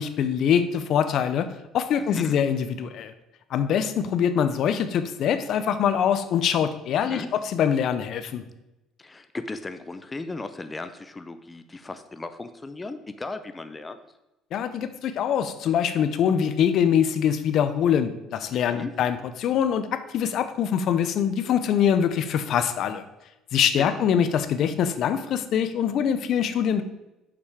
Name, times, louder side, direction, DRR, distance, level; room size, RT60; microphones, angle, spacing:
voice 1, 0.0-3.1 3.5-8.4 14.5-19.9 20.1-23.0 23.5-26.8, left 8 dB, 60° left, 11 dB, 0.6 m, -24 dB
voice 2, 2.0-2.4 7.1-7.3 9.0-14.0 18.5-18.9 23.5-24.0, left 3 dB, 20° left, 10 dB, 0.6 m, -36 dB
6.4 x 5.8 x 4.9 m, 0.97 s
cardioid pair, 100°, 0 cm